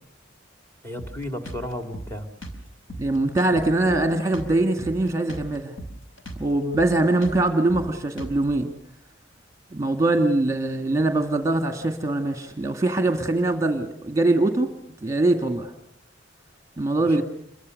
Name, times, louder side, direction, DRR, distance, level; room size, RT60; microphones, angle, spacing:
voice 1, 0.8-2.3 17.0-17.2, left 1 dB, 15° left, 6 dB, 2.7 m, -34 dB
Drum kit, 1.0-8.6, right 1 dB, 90° left, 4.7 m, -39 dB
voice 2, 3.0-5.7 6.4-8.7 9.7-14.7 15.0-15.7 16.8-17.2, right 2 dB, 15° right, 5 dB, 2.0 m, -22 dB
28.0 x 23.5 x 6.5 m, 0.73 s
head